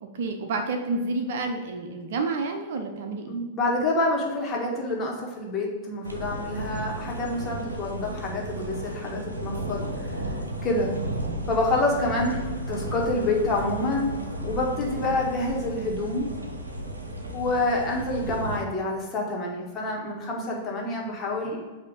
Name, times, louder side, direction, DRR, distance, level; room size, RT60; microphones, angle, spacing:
voice 1, 0.0-3.4, right 3 dB, 55° right, 5 dB, 0.7 m, -29 dB
voice 2, 3.3-10.1 10.6-10.9 11.5-12.4 12.7-14.1 14.4-16.3 17.3-21.6, left 2 dB, 25° left, -2 dB, 1.6 m, -27 dB
sound 1, 6.0-18.6, right 1 dB, 80° right, 0.9 m, -34 dB
8.1 x 2.9 x 5.3 m, 1.4 s
figure-of-eight pair, 95°, 0 cm